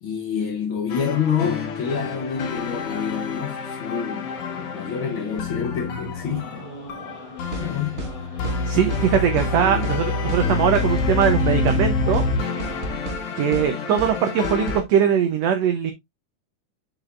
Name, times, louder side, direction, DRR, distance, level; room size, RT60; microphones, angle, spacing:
voice 1, 0.0-6.7 7.6-8.1 9.3-10.0, left 7 dB, 75° left, 1.1 m, -28 dB
sound 1, 0.9-14.8, left 3 dB, 55° left, 1.9 m, -27 dB
sound 2, 4.2-12.9, left 1 dB, 15° left, 1.7 m, -42 dB
sound 3, 7.5-7.7 8.0-8.1 8.4-8.6 8.9-9.5 9.8-10.0 10.3-10.4 10.7-11.4 11.7-11.8 12.1-12.3 12.6-13.2 13.5-13.7 14.0-14.1 14.4-14.8, right 2 dB, 35° right, 1.2 m, -31 dB
voice 2, 8.7-12.2 13.4-15.9, right 8 dB, 70° right, 1.7 m, -21 dB
7.8 x 6.2 x 2.4 m
omnidirectional pair, 3.8 m